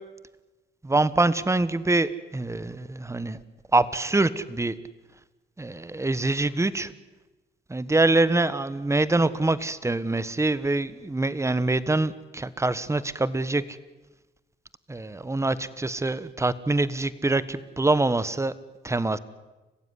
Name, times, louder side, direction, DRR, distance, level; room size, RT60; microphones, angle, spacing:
voice 1, 0.8-3.4 3.7-4.8 5.6-6.9 7.7-13.8 14.9-18.5 18.8-19.2, right 2 dB, 15° right, 16 dB, 1.4 m, -25 dB
30.0 x 15.5 x 9.7 m, 1.1 s
cardioid pair, 90°, 20 cm